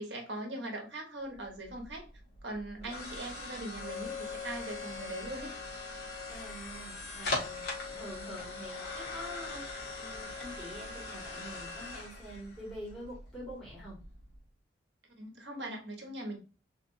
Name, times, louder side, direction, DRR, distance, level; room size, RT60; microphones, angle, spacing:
voice 1, 0.0-2.0 2.4-5.6 15.2-16.4, right 1 dB, 65° right, 1 dB, 1.3 m, -40 dB
sound 1, 1.3-14.4, left 3 dB, 60° left, 1.5 m, -41 dB
voice 2, 6.3-9.6 10.0-14.0, equal, ahead, -9 dB, 2.2 m, -46 dB
3.8 x 3.4 x 2.6 m, 0.34 s
head